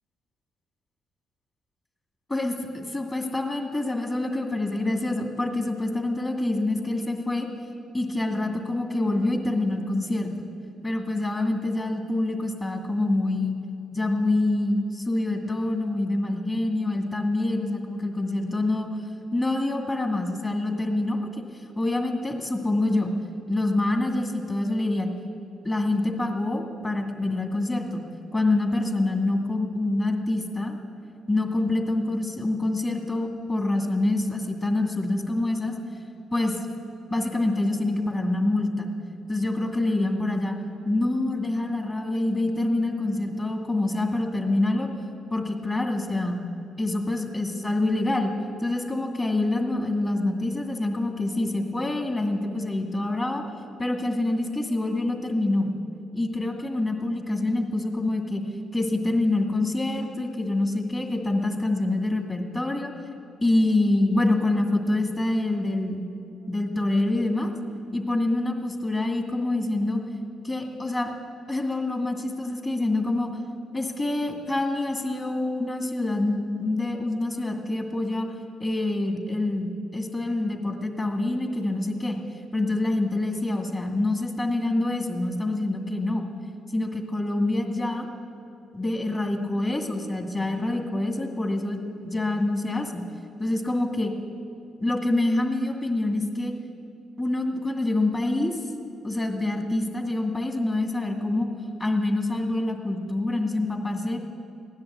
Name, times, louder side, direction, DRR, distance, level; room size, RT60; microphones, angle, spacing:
voice 1, 2.3-7.5 7.9-10.3 10.8-13.6 13.9-18.9 19.3-21.3 21.8-23.1 23.5-25.1 25.6-28.0 28.3-30.8 31.3-35.7 36.3-36.6 37.1-38.9 39.3-40.5 40.8-44.9 45.3-46.4 46.8-48.3 48.6-53.4 53.8-55.7 56.1-58.4 58.7-62.9 63.4-66.1 66.5-67.5 67.9-70.0 70.4-71.1 71.5-73.3 73.7-78.3 78.6-82.2 82.5-86.2 86.7-88.1 88.7-91.8 92.0-93.0 93.4-94.1 94.8-96.5 97.2-98.6 99.0-101.5 101.8-104.2, left 2 dB, 20° left, 3 dB, 2.2 m, -26 dB
16.0 x 10.5 x 8.3 m, 2.6 s
cardioid pair, 90°, 0 cm